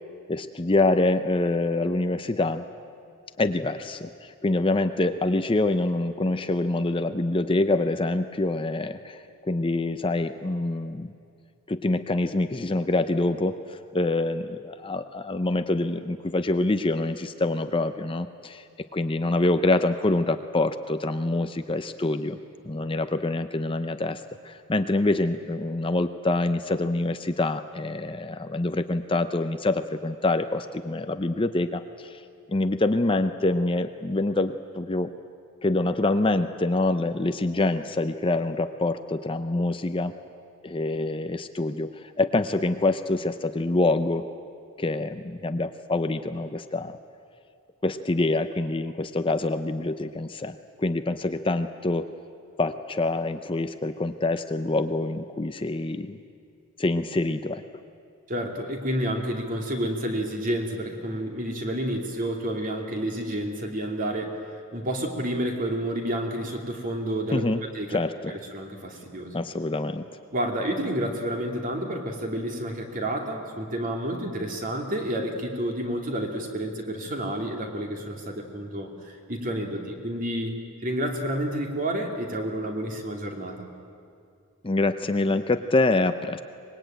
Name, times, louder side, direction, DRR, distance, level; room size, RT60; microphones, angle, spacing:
voice 1, 0.3-2.6 3.4-11.1 11.7-18.6 18.9-22.4 22.6-32.2 32.5-35.1 35.6-40.1 40.6-44.2 44.8-47.0 47.8-52.1 52.6-56.2 56.8-57.6 67.3-67.6 67.9-68.3 69.3-70.0 84.6-86.4, left 2 dB, 25° left, 9 dB, 0.6 m, -26 dB
voice 2, 58.3-64.4 64.7-67.5 67.7-68.0 68.3-69.4 70.3-80.6 80.8-83.7, right 1 dB, 40° right, 2 dB, 2.8 m, -30 dB
24.5 x 21.0 x 9.1 m, 2.4 s
head